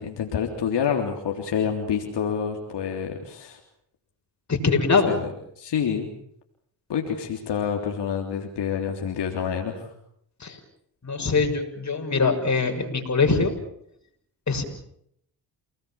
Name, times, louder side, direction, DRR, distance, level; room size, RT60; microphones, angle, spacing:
voice 1, 0.0-3.6 5.0-6.1 6.9-9.9, left 7 dB, 70° left, 2 dB, 3.5 m, -28 dB
voice 2, 4.5-5.1 10.4-10.6 11.0-13.5 14.5-14.6, left 4 dB, 40° left, 5 dB, 6.4 m, -22 dB
29.0 x 19.5 x 7.3 m, 0.72 s
cardioid pair, 65°, 43 cm